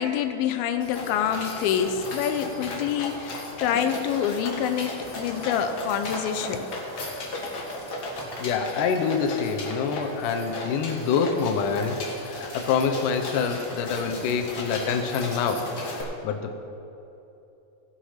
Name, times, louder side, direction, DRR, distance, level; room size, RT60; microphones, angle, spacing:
voice 1, 0.0-6.7, left 8 dB, 90° left, 8 dB, 2.4 m, -26 dB
sound 1, 0.8-16.0, left 2 dB, 45° left, 1.3 m, -35 dB
voice 2, 8.4-16.6, left 6 dB, 70° left, 5 dB, 2.2 m, -26 dB
17.5 x 6.0 x 5.7 m, 2.9 s
omnidirectional pair, 4.2 m